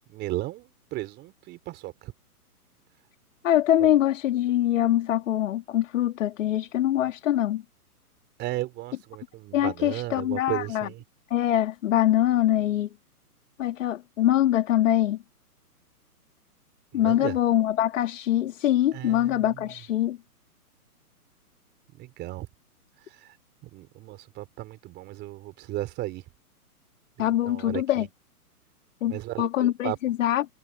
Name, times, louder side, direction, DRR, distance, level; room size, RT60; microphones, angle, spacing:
voice 1, 0.1-2.1 3.8-3.9 8.4-11.0 16.9-17.4 18.9-19.6 21.9-22.5 23.2-23.3 23.6-26.2 27.2-28.1 29.1-30.0, right 17 dB, 20° right, 3.9 m, -35 dB
voice 2, 3.4-7.6 9.5-10.9 11.3-12.9 13.6-15.2 16.9-20.2 27.2-28.1 29.0-30.5, left 12 dB, 55° left, 2.0 m, -23 dB
hypercardioid pair, 145°, 46 cm